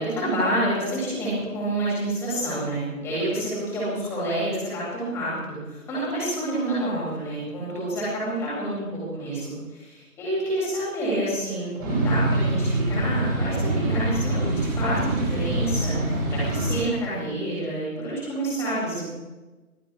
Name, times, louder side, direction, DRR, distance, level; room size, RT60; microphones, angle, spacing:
voice 1, 0.0-19.0, right 1 dB, 5° left, -8 dB, 7.8 m, -28 dB
sound 1, 11.8-16.8, right 2 dB, 15° right, 5.2 m, -25 dB
27.5 x 26.5 x 3.8 m, 1.2 s
figure-of-eight pair, 160°, 45 cm